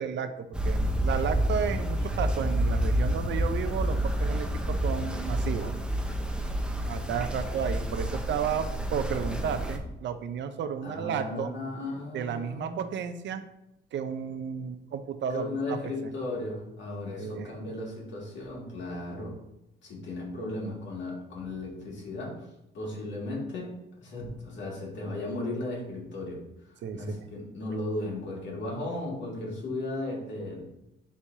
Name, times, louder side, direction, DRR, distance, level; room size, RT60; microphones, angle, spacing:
voice 1, 0.0-5.7 6.9-11.5 12.1-13.4 13.9-15.8 17.2-17.5 26.8-27.0, right 7 dB, 65° right, 9 dB, 0.6 m, -32 dB
sound 1, 0.5-9.8, equal, 5° right, 0.7 m, -29 dB
voice 2, 10.8-12.8 15.3-19.4 19.8-22.5 22.7-26.4 26.7-30.7, left 2 dB, 70° left, -3 dB, 2.2 m, -36 dB
9.9 x 3.4 x 2.8 m, 0.88 s
cardioid pair, 90°, 20 cm